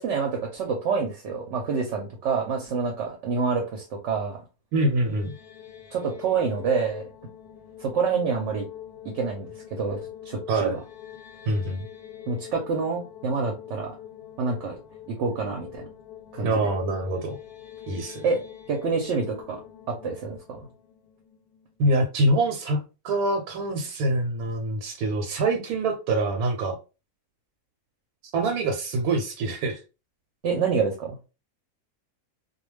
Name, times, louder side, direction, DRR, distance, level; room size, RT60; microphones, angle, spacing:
voice 1, 0.0-4.4 5.9-7.0 7.8-8.7 9.1-10.0 10.3-10.8 12.3-13.9 14.4-14.8 15.1-15.9 16.3-16.6 18.2-18.4 18.7-19.6 19.9-20.6 30.4-31.2, right 5 dB, 65° right, 2 dB, 0.8 m, -27 dB
voice 2, 4.7-5.4 10.5-10.7 11.5-11.8 16.4-17.4 17.9-18.3 21.8-26.8 28.3-29.8, right 2 dB, 90° right, 3 dB, 1.1 m, -25 dB
sound 1, 4.8-21.9, left 10 dB, 90° left, 1.1 m, -44 dB
2.2 x 2.2 x 3.1 m, 0.30 s
omnidirectional pair, 1.5 m